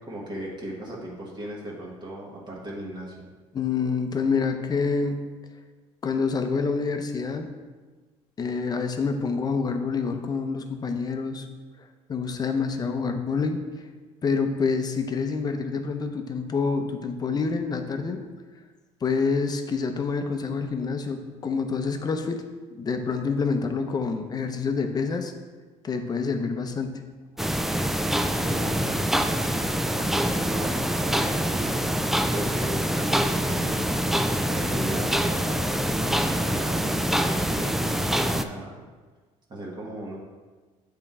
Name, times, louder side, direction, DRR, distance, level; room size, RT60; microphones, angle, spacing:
voice 1, 0.0-3.3 28.3-29.3 29.9-34.0 34.5-38.8 39.5-40.2, right 1 dB, 35° right, -4 dB, 1.5 m, -37 dB
voice 2, 3.5-5.3 6.0-7.5 8.4-11.5 12.1-13.6 14.2-18.2 19.0-22.4 22.7-25.3 25.8-26.9, left 5 dB, 30° left, 6 dB, 0.7 m, -27 dB
sound 1, 27.4-38.4, equal, ahead, 0.3 m, -25 dB
sound 2, 28.2-28.8 29.2-29.7 30.0-30.8 31.1-35.8, right 4 dB, 80° right, 2.0 m, -42 dB
8.0 x 3.8 x 4.3 m, 1.4 s
cardioid pair, 105°, 13 cm